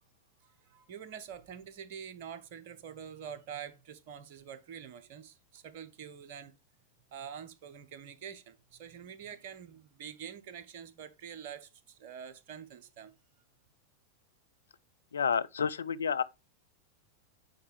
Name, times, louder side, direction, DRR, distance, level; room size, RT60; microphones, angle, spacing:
voice 1, 0.4-6.5 7.1-13.1, right 8 dB, 50° right, 0.9 m, -46 dB
voice 2, 15.1-16.2, left 6 dB, 70° left, 0.4 m, -30 dB
9.1 x 4.7 x 3.4 m
figure-of-eight pair, 90°, 0 cm